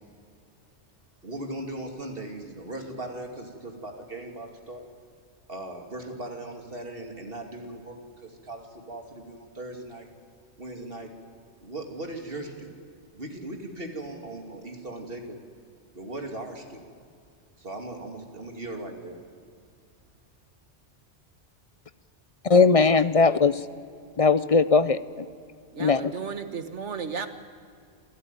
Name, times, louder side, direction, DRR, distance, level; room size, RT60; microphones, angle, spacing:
voice 1, 1.2-4.8 5.5-10.1 10.6-11.1 11.6-12.7 13.1-15.4 15.9-16.8 17.6-19.2, right 1 dB, 55° right, 3 dB, 2.9 m, -38 dB
voice 2, 22.5-23.5 24.2-25.0 25.8-26.1, left 4 dB, 40° left, 14 dB, 0.5 m, -19 dB
voice 3, 25.7-27.3, right 6 dB, 80° right, 9 dB, 1.7 m, -34 dB
28.0 x 13.5 x 9.2 m, 2.4 s
omnidirectional pair, 1.2 m